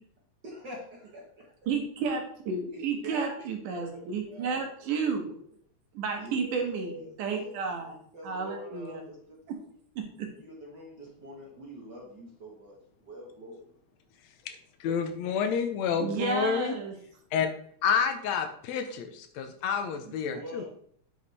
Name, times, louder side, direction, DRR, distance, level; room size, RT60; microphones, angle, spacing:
voice 1, 0.4-1.5 2.7-4.7 4.9-5.2 6.2-9.4 10.4-13.7 20.0-20.6, equal, 45° right, -2 dB, 1.5 m, -45 dB
voice 2, 1.7-5.3 5.9-7.9 8.2-9.0 9.5-9.6 10.2-10.3 16.0-16.9, right 5 dB, 75° right, 3 dB, 2.8 m, -32 dB
voice 3, 14.8-16.8 17.3-17.5 17.8-20.6, left 6 dB, 70° left, 7 dB, 1.8 m, -29 dB
8.7 x 4.9 x 4.1 m, 0.62 s
omnidirectional pair, 3.7 m